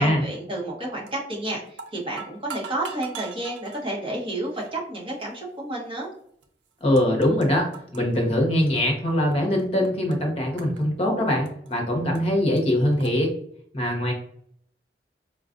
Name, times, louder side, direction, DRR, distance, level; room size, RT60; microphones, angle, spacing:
voice 1, 0.0-6.1, right 1 dB, 30° right, -3 dB, 1.1 m, -31 dB
sound 1, 1.1-1.4 1.7-3.8 4.5-4.7 5.5-5.6 6.4-6.5 6.7-7.5 7.7-9.3 9.6-10.1 10.6-11.7 12.1-12.2 12.6-12.7 13.0-13.1, right 6 dB, 85° right, 0.5 m, -41 dB
voice 2, 6.8-7.7 7.9-13.3 13.7-14.1, left 1 dB, 35° left, 1 dB, 0.9 m, -22 dB
4.7 x 2.4 x 2.5 m, 0.66 s
head